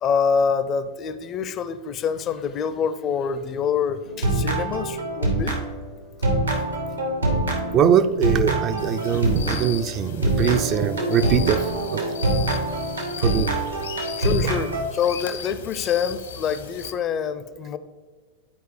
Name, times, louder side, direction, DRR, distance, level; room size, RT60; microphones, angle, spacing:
voice 1, 0.0-5.6 14.2-17.8, left 6 dB, 30° left, 12 dB, 0.5 m, -26 dB
sound 1, 4.1-6.0 6.2-9.8 10.2-14.8, right 2 dB, 80° right, 1.3 m, -25 dB
voice 2, 7.7-11.6 11.9-12.0 13.2-13.5, right 8 dB, 35° right, 9 dB, 0.4 m, -22 dB
sound 2, 8.8-16.9, left 7 dB, 70° left, 0.9 m, -37 dB
12.5 x 4.5 x 3.2 m, 1.5 s
figure-of-eight pair, 90°, 0 cm